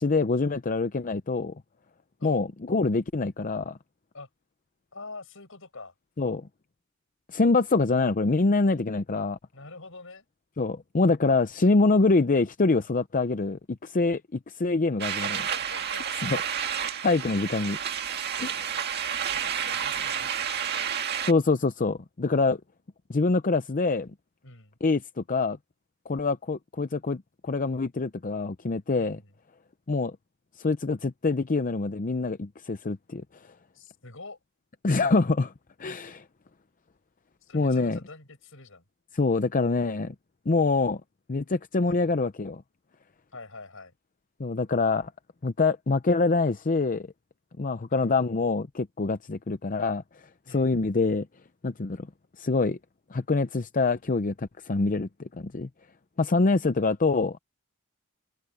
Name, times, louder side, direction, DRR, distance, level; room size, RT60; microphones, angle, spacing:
voice 1, 0.0-1.5 2.2-3.8 6.2-6.4 7.3-9.4 10.6-15.4 16.2-16.4 17.0-17.8 18.4-18.7 21.2-22.6 23.1-24.1 24.8-25.6 26.1-29.2 29.9-30.1 30.6-33.2 34.8-35.5 35.8-36.2 37.5-38.0 39.1-40.1 40.5-41.0 41.3-42.6 44.4-45.1 45.4-47.1 47.6-50.0 50.5-51.3 51.6-52.1 52.4-52.8 53.1-55.7 56.2-57.4, left 3 dB, 40° left, 0.6 m, -25 dB
voice 2, 4.9-5.9 9.5-10.2 15.3-16.0 19.3-20.9 24.4-24.8 28.9-29.3 33.7-34.4 37.4-38.8 41.8-42.1 43.3-43.9 47.9-48.1 50.4-50.7, left 3 dB, 65° left, 7.6 m, -46 dB
sound 1, 15.0-21.3, right 8 dB, 50° right, 1.9 m, -30 dB
head